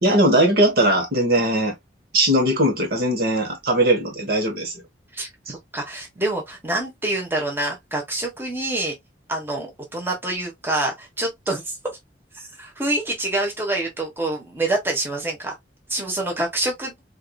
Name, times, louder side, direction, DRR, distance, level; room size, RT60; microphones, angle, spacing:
voice 1, 0.0-1.7 2.1-4.8 5.5-5.6, right 1 dB, 55° right, 1.2 m, -19 dB
voice 2, 5.1-8.9 9.3-12.0 12.3-15.5 15.9-16.9, right 2 dB, 10° right, 1.1 m, -26 dB
4.6 x 2.6 x 2.2 m
head